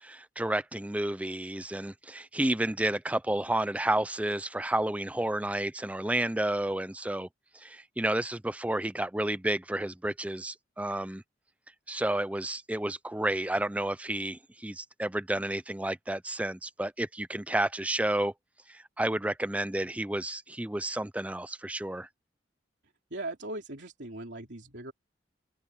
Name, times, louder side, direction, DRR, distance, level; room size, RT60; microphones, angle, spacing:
voice 1, 0.0-7.3 7.5-11.2 11.9-18.3 18.7-22.1, right 1 dB, 5° right, 0.5 m, -31 dB
voice 2, 23.1-24.9, right 2 dB, 70° right, 3.2 m, -39 dB
open air
head